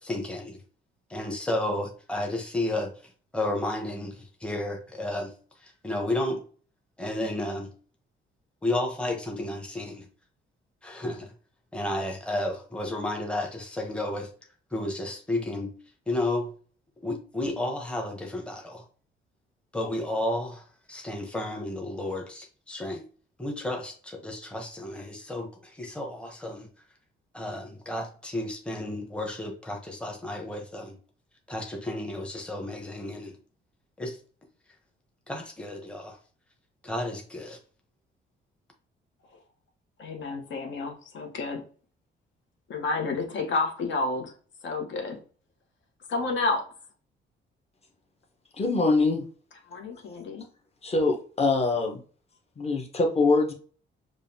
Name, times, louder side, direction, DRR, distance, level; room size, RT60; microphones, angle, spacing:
voice 1, 0.0-0.6 1.1-5.3 5.6-6.4 7.0-7.7 8.6-10.1 10.8-11.3 11.7-14.3 14.7-15.7 16.1-16.5 17.0-18.8 19.7-23.1 23.4-26.7 27.3-31.0 31.5-33.4 34.0-34.2 35.3-36.2 36.8-37.6, left 1 dB, 5° left, 0.9 m, -32 dB
voice 2, 40.0-41.6 42.7-44.3 44.6-45.2 46.1-46.7 49.7-50.5, left 3 dB, 70° left, 1.0 m, -30 dB
voice 3, 48.6-49.3 50.8-52.0 52.6-53.5, left 3 dB, 30° left, 1.1 m, -23 dB
4.8 x 2.4 x 2.8 m
cardioid pair, 90°, 20 cm